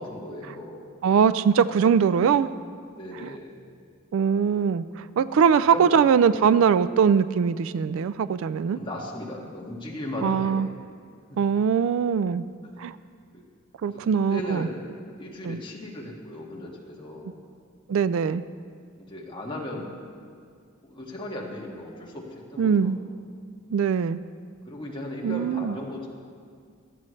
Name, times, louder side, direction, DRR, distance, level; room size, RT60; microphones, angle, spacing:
voice 1, 0.0-0.9 3.0-3.5 5.7-5.9 8.7-10.6 11.3-11.4 13.8-14.0 14.3-14.8 15.2-17.3 19.0-19.9 20.8-22.9 24.7-26.1, left 1 dB, 25° left, -3 dB, 1.8 m, -36 dB
voice 2, 1.0-2.5 3.1-3.3 4.1-8.8 10.2-10.7 11.4-12.4 12.8-13.0 13.8-14.7 15.4-15.6 17.9-18.4 22.6-23.0 23.7-24.2 25.2-25.8, right 7 dB, 70° right, 15 dB, 0.3 m, -22 dB
16.0 x 12.5 x 3.2 m, 2.1 s
head